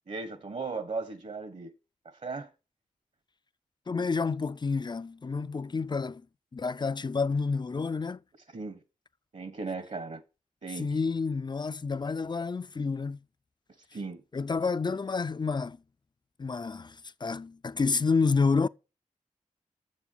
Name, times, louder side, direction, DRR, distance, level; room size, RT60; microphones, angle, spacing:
voice 1, 0.1-1.7 2.2-2.5 8.5-8.8 9.3-10.2 10.6-10.9 13.9-14.2, right 4 dB, 60° right, 1.4 m, -36 dB
voice 2, 3.9-6.2 6.5-8.2 10.7-13.2 14.3-15.8 16.4-18.7, left 4 dB, 35° left, 0.5 m, -29 dB
7.3 x 7.1 x 6.9 m
cardioid pair, 45°, 14 cm